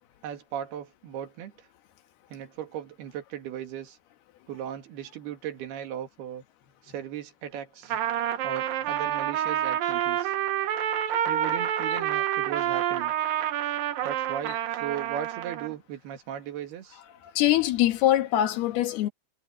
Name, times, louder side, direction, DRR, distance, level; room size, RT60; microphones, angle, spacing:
voice 1, 0.2-1.7 2.3-4.0 4.5-6.4 6.8-8.0 8.4-10.3 11.3-13.1 14.0-17.0, right 10 dB, 90° right, 4.0 m, -37 dB
Trumpet, 7.8-15.7, right 11 dB, 70° right, 2.9 m, -28 dB
voice 2, 17.2-19.1, left 13 dB, 90° left, 3.5 m, -23 dB
omnidirectional pair, 4.4 m